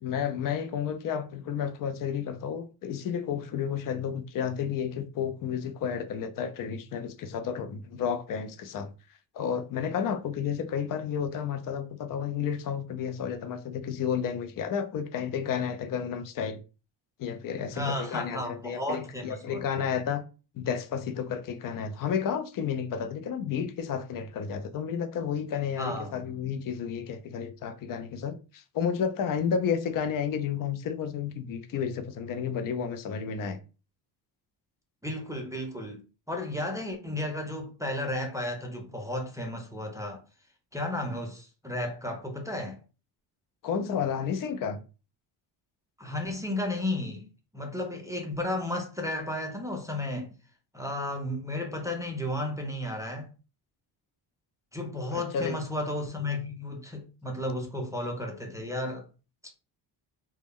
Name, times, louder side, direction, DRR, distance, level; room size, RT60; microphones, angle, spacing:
voice 1, 0.0-8.9 9.3-16.6 17.2-20.2 20.5-33.6 43.6-44.8 55.1-55.6, left 7 dB, 50° left, 0.5 m, -31 dB
voice 2, 17.7-19.6 25.8-26.1 35.0-36.0 36.3-40.2 40.7-42.8 46.0-47.3 47.5-50.3 50.7-53.3 54.7-59.0, left 1 dB, 5° right, 0.4 m, -33 dB
2.2 x 2.1 x 3.5 m
cardioid pair, 100°, 45 cm